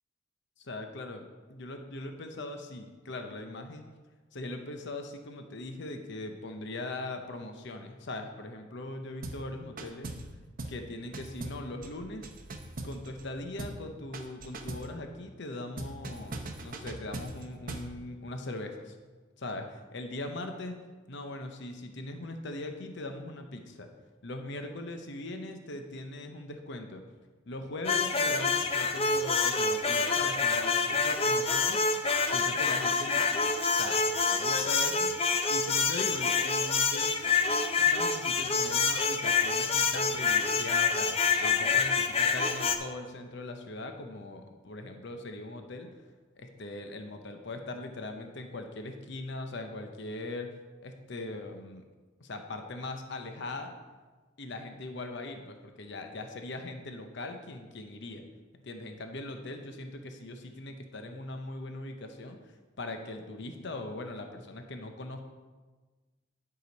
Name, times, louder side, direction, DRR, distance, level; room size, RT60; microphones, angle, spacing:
voice 1, 0.6-1.2 1.5-3.9 4.3-10.1 10.7-12.3 12.8-19.0 19.4-20.8 21.1-23.9 24.2-27.0 27.5-31.8 32.3-33.4 33.7-35.1 35.5-37.2 37.8-41.1 41.4-45.9 46.4-50.5 50.8-51.8 52.2-53.8 54.4-58.2 58.6-65.2, left 2 dB, 60° left, 5 dB, 0.8 m, -40 dB
sound 1, 9.2-9.5 9.8-10.3 10.6-10.8 11.1-13.3 13.6-13.8 14.1-14.9 15.8-17.9, right 2 dB, 45° right, 0.8 m, -40 dB
sound 2, 27.8-42.8, left 4 dB, 30° left, 0.5 m, -27 dB
11.0 x 5.0 x 5.2 m, 1.3 s
head